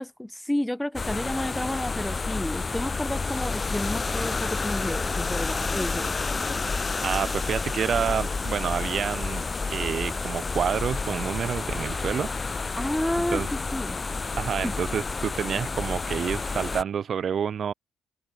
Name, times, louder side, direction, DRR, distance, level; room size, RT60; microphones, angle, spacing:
voice 1, 0.0-6.1 12.8-14.0 14.6-14.7, left 1 dB, 5° left, 2.5 m, -31 dB
sound 1, 0.9-16.8, left 4 dB, 30° left, 3.0 m, -30 dB
voice 2, 6.7-12.3 13.3-13.5 14.4-17.7, right 7 dB, 55° right, 2.8 m, -28 dB
cardioid pair, 90°, 0 cm